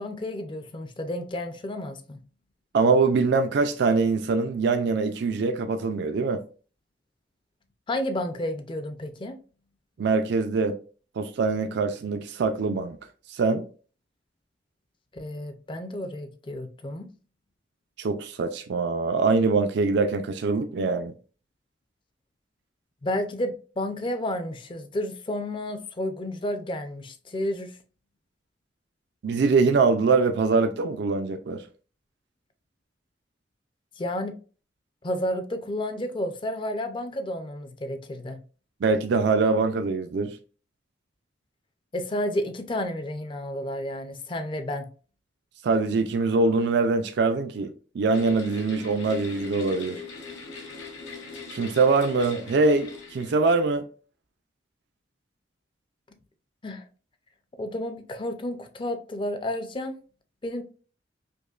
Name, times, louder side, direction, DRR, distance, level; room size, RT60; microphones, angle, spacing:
voice 1, 0.0-2.2 7.9-9.4 15.1-17.1 23.0-27.7 34.0-34.3 35.0-38.4 41.9-44.9 56.6-56.8 57.6-60.0 60.4-60.6, left 1 dB, 25° left, 0.5 m, -31 dB
voice 2, 2.7-6.4 10.0-10.8 11.2-13.0 13.3-13.6 18.0-21.1 29.2-31.6 38.8-40.4 45.6-50.0 51.5-53.8, right 4 dB, 65° right, 0.4 m, -23 dB
sound 1, 48.1-53.7, left 4 dB, 90° left, 1.1 m, -41 dB
5.1 x 2.1 x 2.3 m
head